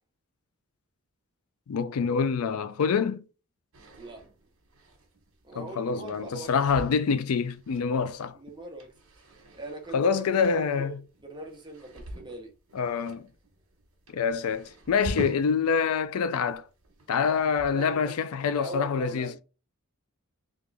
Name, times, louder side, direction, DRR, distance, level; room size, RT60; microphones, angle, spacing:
voice 1, 1.7-3.2 5.6-8.4 9.9-11.0 12.7-13.3 14.1-16.7 17.1-19.3, left 6 dB, 85° left, 0.4 m, -26 dB
sound 1, 3.7-16.0 16.3-17.9, right 1 dB, 70° right, 1.2 m, -44 dB
voice 2, 5.4-6.5 8.3-8.9 9.2-12.5 17.3-18.1 18.6-19.4, right 2 dB, 20° right, 0.9 m, -41 dB
3.6 x 2.5 x 3.3 m
head